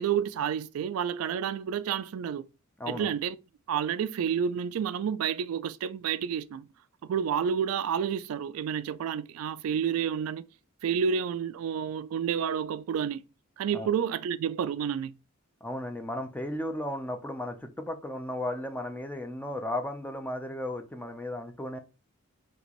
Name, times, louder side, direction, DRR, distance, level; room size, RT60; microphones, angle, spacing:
voice 1, 0.0-2.5 2.9-3.4 3.7-6.7 7.0-10.4 10.8-13.2 13.6-15.1, right 7 dB, 85° right, 0.3 m, -30 dB
voice 2, 2.8-3.1 13.7-13.9 15.6-21.8, left 1 dB, 10° left, 0.5 m, -35 dB
4.3 x 2.9 x 2.9 m
head